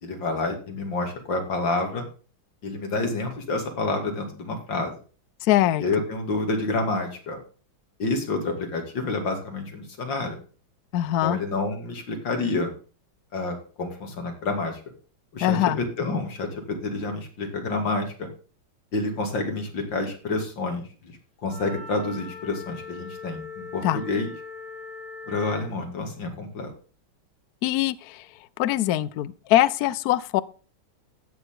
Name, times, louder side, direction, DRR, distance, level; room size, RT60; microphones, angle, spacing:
voice 1, 0.0-2.0 2.6-4.9 5.8-7.4 8.0-10.4 11.0-12.7 13.3-14.8 15.3-18.3 18.9-20.9 21.4-24.3 25.3-26.7, left 3 dB, 60° left, 3 dB, 3.2 m, -28 dB
voice 2, 5.4-5.8 10.9-11.4 15.4-15.8 23.8-24.0 27.6-28.3 28.6-30.4, left 14 dB, 85° left, 18 dB, 0.8 m, -22 dB
Wind instrument woodwind instrument, 21.4-25.7, left 4 dB, 60° right, 4.6 m, -40 dB
15.5 x 6.9 x 3.8 m, 0.38 s
omnidirectional pair, 2.3 m